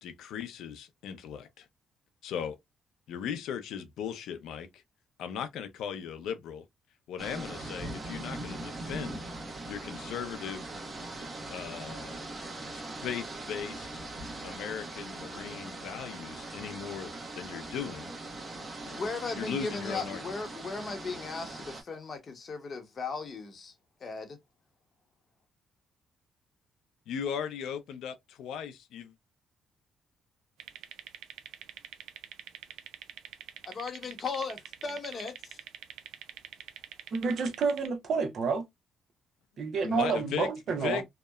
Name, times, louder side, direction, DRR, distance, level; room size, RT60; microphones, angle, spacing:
voice 1, 0.0-1.6 2.2-2.6 3.1-4.7 5.2-6.6 7.1-9.2 9.7-10.6 11.5-12.4 12.7-13.9 14.4-18.1 19.4-20.2 27.1-29.1 39.8-40.5 40.8-41.0, left 8 dB, 85° left, 0.5 m, -37 dB
sound 1, 7.2-21.8, right 2 dB, 30° right, 0.9 m, -41 dB
voice 2, 18.8-23.7 24.0-24.4 33.6-35.3, left 4 dB, 40° left, 0.8 m, -37 dB
sound 2, 30.6-37.9, right 9 dB, 85° right, 0.3 m, -46 dB
voice 3, 37.1-38.6 39.6-41.0, right 5 dB, 60° right, 0.8 m, -29 dB
2.8 x 2.1 x 2.2 m
cardioid pair, 90°, 0 cm